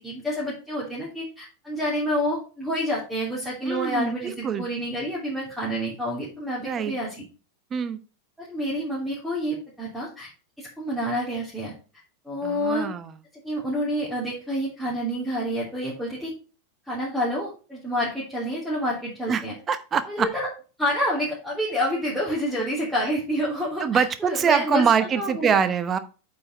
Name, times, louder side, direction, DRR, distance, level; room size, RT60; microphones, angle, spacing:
voice 1, 0.0-7.2 8.4-10.3 10.6-11.7 12.2-12.9 13.4-16.3 16.9-19.5 20.1-20.5 20.8-24.8 25.1-25.6, equal, ahead, -8 dB, 3.1 m, -28 dB
voice 2, 3.7-4.7 6.6-6.9 7.7-8.0 12.4-13.1 19.3-20.3 23.8-26.0, right 7 dB, 25° right, 12 dB, 0.9 m, -24 dB
8.4 x 5.3 x 4.4 m, 0.34 s
figure-of-eight pair, 90°, 0 cm